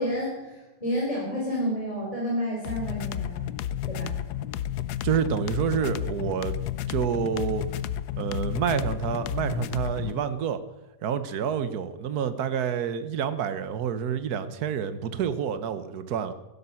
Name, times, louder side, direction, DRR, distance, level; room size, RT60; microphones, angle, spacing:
voice 1, 0.0-3.4 3.9-4.2, equal, 20° left, -5 dB, 3.9 m, -30 dB
sound 1, 2.6-10.2, left 11 dB, 80° left, 1.2 m, -32 dB
voice 2, 5.0-6.6 6.9-7.7 8.2-10.6 11.0-16.3, right 8 dB, 70° right, 12 dB, 1.5 m, -28 dB
15.5 x 12.5 x 5.8 m, 1.1 s
omnidirectional pair, 1.7 m